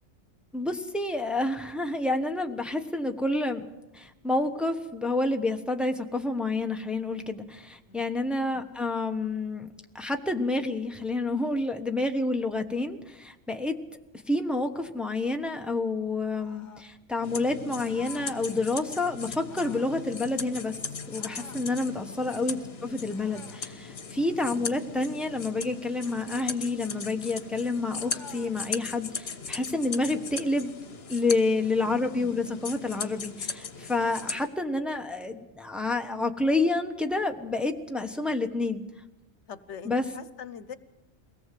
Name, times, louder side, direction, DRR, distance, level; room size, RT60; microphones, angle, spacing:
voice 1, 0.5-3.7 3.9-13.8 14.3-20.7 21.1-30.7 31.1-38.8 39.8-40.0, left 2 dB, ahead, 5 dB, 1.1 m, -29 dB
sound 1, 16.3-16.9 17.9-18.4 19.4-20.0 21.1-21.7 23.1-23.7 26.0-26.6 28.0-28.6, left 4 dB, 40° left, 1.5 m, -50 dB
sound 2, 17.2-34.5, left 5 dB, 60° left, 1.4 m, -38 dB
voice 2, 31.3-31.6 39.5-40.8, left 7 dB, 80° left, 14 dB, 1.2 m, -44 dB
23.0 x 17.5 x 7.7 m, 1.0 s
omnidirectional pair, 1.2 m